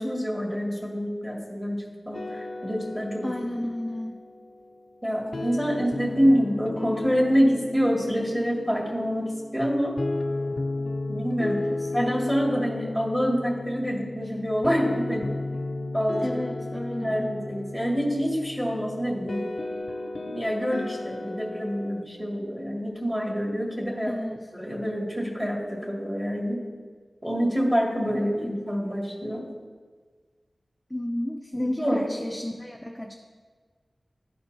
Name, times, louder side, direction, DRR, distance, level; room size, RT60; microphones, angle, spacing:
voice 1, 0.0-3.4 5.0-10.0 11.1-11.7 11.9-15.4 15.9-16.4 17.0-19.5 20.2-24.2 24.5-26.6 27.2-29.5 31.5-32.1, equal, 10° right, -3 dB, 2.0 m, -26 dB
sound 1, 2.1-22.0, left 2 dB, 65° left, 0.4 m, -35 dB
voice 2, 3.2-4.2 11.8-12.1 16.2-17.4 24.1-24.4 28.1-28.5 30.9-33.1, left 1 dB, 5° left, 1 dB, 0.5 m, -32 dB
13.0 x 4.3 x 2.7 m, 1.5 s
wide cardioid pair, 70°, 0 cm